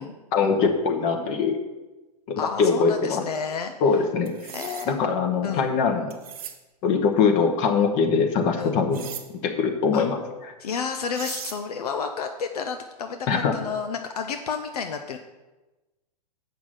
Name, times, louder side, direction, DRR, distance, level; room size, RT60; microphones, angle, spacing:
voice 1, 0.3-1.6 2.3-3.2 3.8-4.3 4.9-6.1 6.8-9.0 9.4-10.2 13.3-13.5, left 5 dB, 40° left, 4 dB, 1.2 m, -22 dB
voice 2, 2.4-3.7 4.5-5.0 5.4-5.7 8.6-8.7 9.9-10.1 10.6-15.2, left 6 dB, 65° left, 6 dB, 0.7 m, -31 dB
sound 1, 4.3-4.9 6.1-6.6 8.9-9.3 10.8-10.9 11.1-11.6, right 9 dB, 60° right, 1.1 m, -38 dB
7.3 x 6.0 x 6.4 m, 1.1 s
figure-of-eight pair, 105°, 21 cm